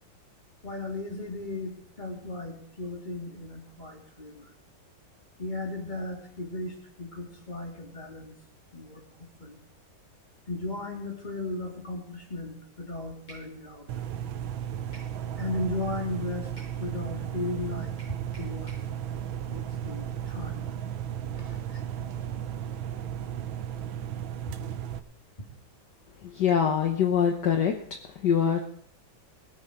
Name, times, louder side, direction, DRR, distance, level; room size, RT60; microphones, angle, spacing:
voice 1, 0.6-4.5 5.4-8.3 8.7-9.0 9.4-9.6 10.5-13.9 15.4-16.5 16.8-18.0 18.4-18.8 19.5-20.6 21.4-21.8, left 2 dB, 20° left, -1 dB, 3.2 m, -36 dB
sound 1, 13.3-13.5 14.9-15.2 16.6-16.8 18.0-18.9, right 2 dB, 85° left, 7.9 m, -50 dB
sound 2, 13.9-25.0, right 9 dB, 90° right, 1.6 m, -35 dB
voice 2, 26.2-27.7 28.1-28.6, left 8 dB, 65° left, 4 dB, 1.6 m, -24 dB
20.5 x 8.2 x 5.2 m, 0.64 s
omnidirectional pair, 2.1 m